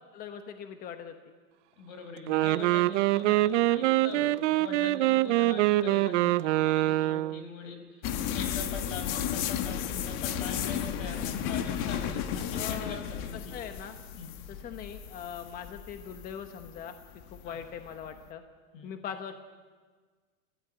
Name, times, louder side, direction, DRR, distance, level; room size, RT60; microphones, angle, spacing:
voice 1, 0.1-1.1 12.5-13.0 13.3-14.0 14.5-16.9 17.3-18.4 18.8-19.3, left 8 dB, 20° left, 7 dB, 1.0 m, -41 dB
voice 2, 1.8-13.5 14.2-14.3 17.4-17.6 18.7-19.0, left 3 dB, 65° left, 6 dB, 5.5 m, -43 dB
Wind instrument woodwind instrument, 2.2-7.4, right 16 dB, 60° right, 0.7 m, -25 dB
sound 1, 8.0-18.2, left 9 dB, 40° left, 1.4 m, -34 dB
28.5 x 14.5 x 9.0 m, 1.5 s
supercardioid pair, 165°, 42 cm